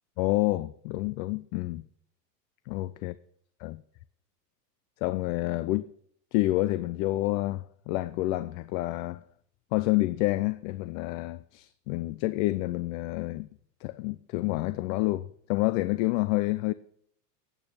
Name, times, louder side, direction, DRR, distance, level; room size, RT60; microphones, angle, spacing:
voice 1, 0.2-1.8 2.7-3.1 3.6-3.8 5.0-5.9 6.3-9.2 9.7-13.5 13.8-16.7, left 18 dB, 50° left, 0.7 m, -28 dB
11.5 x 9.1 x 6.2 m
supercardioid pair, 130°, 50 cm